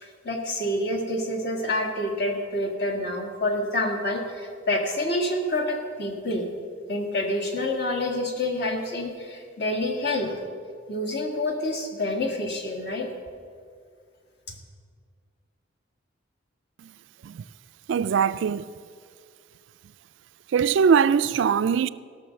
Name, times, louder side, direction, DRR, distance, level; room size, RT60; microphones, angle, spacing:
voice 1, 0.0-6.5 6.9-10.4 10.9-13.1 14.5-14.6, left 1 dB, 60° left, 1.8 m, -28 dB
voice 2, 17.9-18.7 20.5-21.9, right 6 dB, 70° right, 0.3 m, -21 dB
16.0 x 6.3 x 6.3 m
head